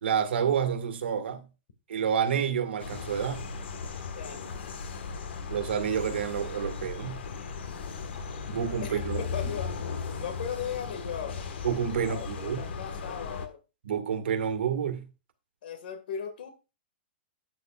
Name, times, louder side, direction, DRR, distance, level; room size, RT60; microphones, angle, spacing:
voice 1, 0.0-1.4 1.9-3.5 5.5-7.2 8.5-9.2 11.6-12.6 13.8-15.1, right 8 dB, 90° right, 1.8 m, -29 dB
sound 1, 2.8-13.5, left 5 dB, 85° left, 1.6 m, -37 dB
voice 2, 4.1-4.7 8.8-9.7 10.2-11.4 12.0-13.6 15.6-16.5, left 7 dB, 60° left, 1.9 m, -37 dB
12.5 x 8.5 x 2.4 m
hypercardioid pair, 175°, 6 cm